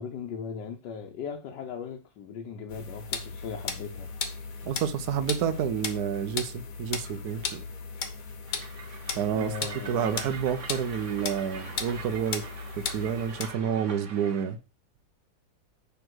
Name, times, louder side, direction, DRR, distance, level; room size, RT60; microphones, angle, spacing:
voice 1, 0.0-4.1 9.3-10.2, left 6 dB, 80° left, 1.4 m, -38 dB
sound 1, 2.7-13.6, left 5 dB, 55° left, 1.3 m, -36 dB
voice 2, 4.6-7.6 9.2-9.5 9.9-12.5 12.8-14.6, right 8 dB, 70° right, 1.2 m, -29 dB
Train, 8.5-14.5, right 5 dB, 45° right, 1.4 m, -44 dB
6.9 x 3.5 x 6.0 m
omnidirectional pair, 1.9 m